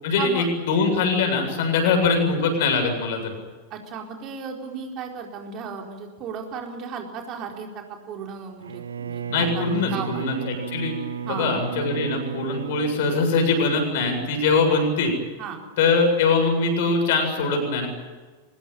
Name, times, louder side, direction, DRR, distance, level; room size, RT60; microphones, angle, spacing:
voice 1, 0.0-3.3 9.3-11.0 11.2-15.1 15.8-17.9, left 4 dB, 55° left, 4 dB, 7.7 m, -22 dB
voice 2, 3.7-10.3 11.3-11.6 15.4-15.6, right 6 dB, 35° right, 2 dB, 4.4 m, -35 dB
Bowed string instrument, 8.6-13.9, right 8 dB, 70° right, 1.6 m, -33 dB
24.5 x 21.0 x 9.0 m, 1.4 s
figure-of-eight pair, 90°, 0 cm